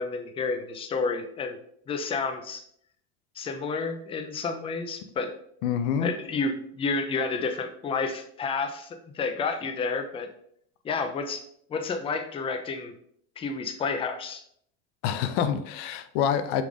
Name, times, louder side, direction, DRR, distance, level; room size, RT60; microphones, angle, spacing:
voice 1, 0.0-1.6 1.9-2.6 3.4-5.3 6.0-10.3 10.8-11.4 11.7-12.9 13.4-14.4, left 4 dB, 15° left, 6 dB, 0.4 m, -30 dB
voice 2, 5.6-6.1 15.0-16.6, left 8 dB, 75° left, 10 dB, 0.6 m, -26 dB
5.0 x 2.5 x 3.4 m, 0.68 s
supercardioid pair, 130°, 35 cm